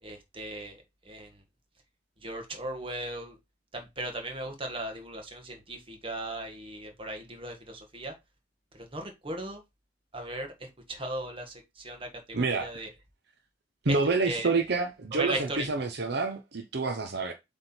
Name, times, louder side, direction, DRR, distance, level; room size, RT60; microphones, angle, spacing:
voice 1, 0.0-1.4 2.2-3.4 3.7-8.1 8.7-9.6 10.1-12.9 13.9-14.0 14.2-14.5 15.1-15.7, right 2 dB, 30° right, 1.7 m, -37 dB
voice 2, 12.3-12.8 13.8-17.3, right 3 dB, 60° right, 0.8 m, -28 dB
7.8 x 3.6 x 4.5 m
head